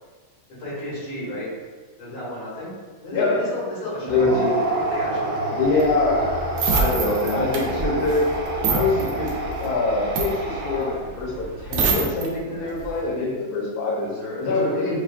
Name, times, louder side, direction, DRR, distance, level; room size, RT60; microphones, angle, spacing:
voice 1, 0.6-1.6 2.0-2.8 3.0-4.3 4.7-5.4 12.4-12.7 14.0-14.9, left 1 dB, 90° left, -8 dB, 2.4 m, -33 dB
voice 2, 3.1-3.5 4.0-4.5 5.5-6.3 6.7-8.3 8.7-14.1 14.4-15.0, left 3 dB, 60° left, -4 dB, 1.2 m, -24 dB
sound 1, 4.0-11.2, right 1 dB, 70° right, 1.4 m, -28 dB
sound 2, 5.6-12.3 12.7-13.0, right 4 dB, 85° right, 0.8 m, -26 dB
6.0 x 2.2 x 2.4 m, 1.4 s
omnidirectional pair, 2.3 m